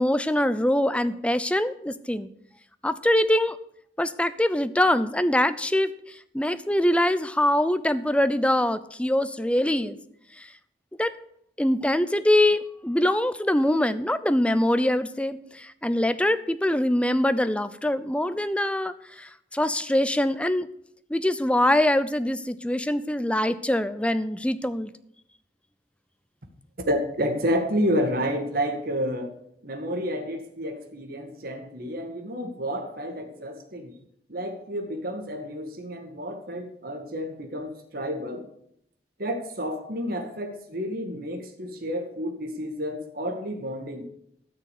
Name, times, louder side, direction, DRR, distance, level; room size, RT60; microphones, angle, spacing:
voice 1, 0.0-2.3 2.8-3.6 4.0-5.9 6.3-10.0 10.4-10.5 11.0-11.1 11.6-20.7 21.1-24.9, left 1 dB, 5° left, 12 dB, 0.6 m, -23 dB
voice 2, 26.8-29.3 29.6-34.0 34.3-38.4 39.2-44.0, equal, 55° right, 4 dB, 1.9 m, -30 dB
13.0 x 6.5 x 8.4 m, 0.72 s
head